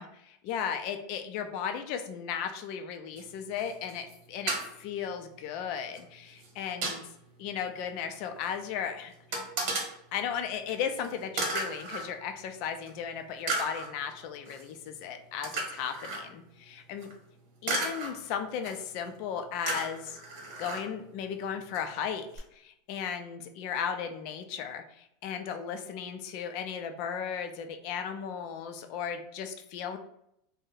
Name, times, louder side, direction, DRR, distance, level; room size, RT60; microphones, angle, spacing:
voice 1, 0.0-7.0 7.4-9.1 10.1-17.1 17.6-20.2 20.6-30.0, left 7 dB, 50° left, 7 dB, 0.4 m, -36 dB
sound 1, 3.2-3.3 3.5-4.1 4.5-4.6 5.9-6.0 6.4-7.0 8.1-8.2 8.4-8.5 9.3-9.9 10.7-10.8 11.0-11.1 11.4-12.1 12.9-13.0 13.5-13.9 14.5-14.6 15.4-16.2 17.0-17.1 17.7-18.1 18.6-19.0 19.7-20.8 21.7-21.8 22.4-22.5, right 2 dB, 55° right, 1.0 m, -33 dB
2.6 x 2.0 x 3.8 m, 0.76 s
supercardioid pair, 150°, 0 cm